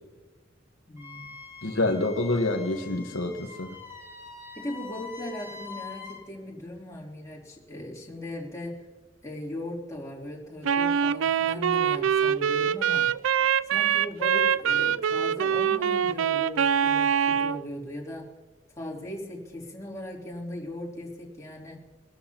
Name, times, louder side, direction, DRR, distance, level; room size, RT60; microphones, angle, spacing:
voice 1, 0.9-1.3 4.5-8.8 9.2-13.1 13.6-18.3 18.8-21.8, left 1 dB, 15° left, -4 dB, 3.1 m, -38 dB
Wind instrument woodwind instrument, 1.0-6.2, left 5 dB, 15° right, 4.9 m, -44 dB
voice 2, 1.6-3.8, left 2 dB, 75° left, 3 dB, 1.3 m, -27 dB
Wind instrument woodwind instrument 2, 10.6-17.6, right 8 dB, 80° right, 0.4 m, -24 dB
24.5 x 13.0 x 2.9 m, 1.3 s
head